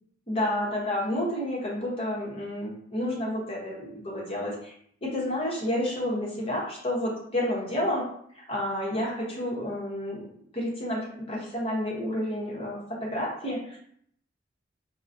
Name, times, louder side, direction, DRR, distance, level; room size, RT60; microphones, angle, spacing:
voice 1, 0.3-4.7 5.0-8.0 8.4-10.3 10.5-13.8, left 1 dB, 30° left, -4 dB, 0.9 m, -30 dB
3.8 x 2.1 x 2.6 m, 0.67 s
head